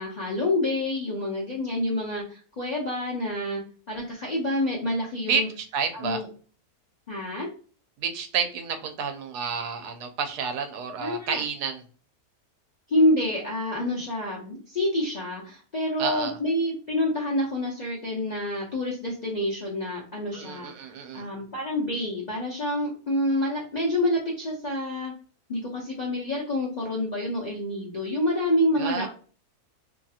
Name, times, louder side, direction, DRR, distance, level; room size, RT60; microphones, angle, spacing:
voice 1, 0.0-3.6 3.9-5.5 5.9-6.3 7.1-7.5 11.0-11.4 12.9-25.1 25.5-29.1, left 1 dB, 70° left, -4 dB, 0.4 m, -27 dB
voice 2, 5.3-6.2 8.0-11.8 16.0-16.4 20.3-21.3 28.8-29.1, right 6 dB, 85° right, 6 dB, 1.2 m, -30 dB
2.9 x 2.7 x 2.3 m, 0.40 s
omnidirectional pair, 1.7 m